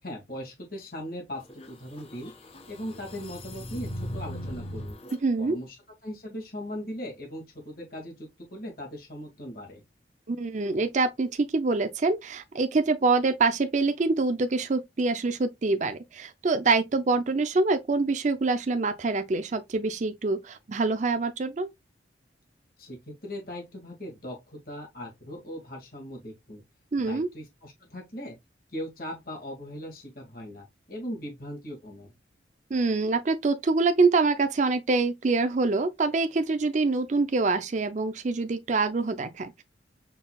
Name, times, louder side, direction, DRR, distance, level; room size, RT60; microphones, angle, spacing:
voice 1, 0.0-2.3 2.7-5.0 5.4-9.8 22.8-26.6 27.0-28.4 28.7-32.1, equal, 50° left, 2.0 m, -39 dB
sound 1, 1.4-5.2, equal, 30° left, 0.8 m, -39 dB
voice 2, 5.2-5.6 10.3-21.7 26.9-27.3 32.7-39.6, right 3 dB, 40° right, 0.5 m, -25 dB
5.6 x 3.9 x 2.3 m
head